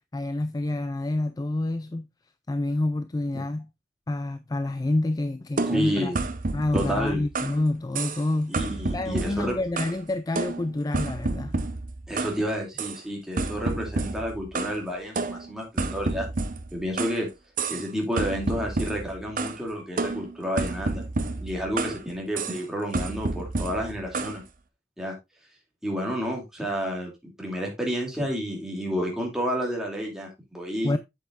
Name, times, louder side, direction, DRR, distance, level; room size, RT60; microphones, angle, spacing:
voice 1, 0.1-2.1 2.5-3.7 4.1-6.1 6.5-8.5 8.9-11.5 30.8-31.0, left 2 dB, 20° left, 0.3 m, -28 dB
sound 1, 5.6-7.6 8.0-8.3 8.5-10.0 10.4-12.4 12.8-13.0 13.4-14.8 15.2-17.2 17.6-17.9 18.2-19.6 20.0-22.0 22.4-22.6 22.9-24.4, right 3 dB, 45° right, 0.8 m, -30 dB
voice 2, 5.7-6.2 6.7-7.2 8.5-9.6 12.1-16.3 16.7-17.3 17.7-21.0 21.4-24.4 25.0-25.2 25.8-27.1 27.4-30.9, equal, 5° right, 2.7 m, -30 dB
8.2 x 7.8 x 2.5 m
head